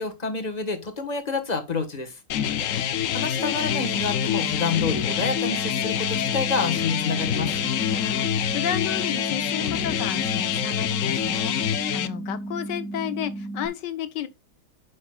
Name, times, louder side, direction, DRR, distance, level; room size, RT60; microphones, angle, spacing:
voice 1, 0.0-2.2 3.1-7.5, left 4 dB, 25° left, 1.3 m, -28 dB
sound 1, 2.3-12.1, left 10 dB, 60° left, 0.9 m, -26 dB
sound 2, 3.7-13.7, right 2 dB, ahead, 0.8 m, -34 dB
voice 2, 7.9-14.3, left 10 dB, 80° left, 1.6 m, -33 dB
9.4 x 6.4 x 2.3 m
omnidirectional pair, 1.9 m